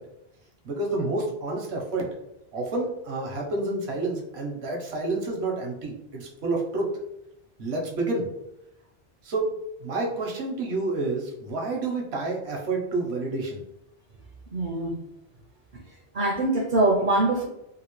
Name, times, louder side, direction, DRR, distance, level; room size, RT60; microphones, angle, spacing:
voice 1, 0.6-2.1 2.5-6.9 7.6-8.2 9.2-9.5 9.8-13.6, right 2 dB, 80° right, 0 dB, 1.1 m, -29 dB
voice 2, 14.5-14.9 16.1-17.5, right 2 dB, 60° right, 0 dB, 0.7 m, -23 dB
2.9 x 2.6 x 3.0 m, 0.85 s
omnidirectional pair, 1.1 m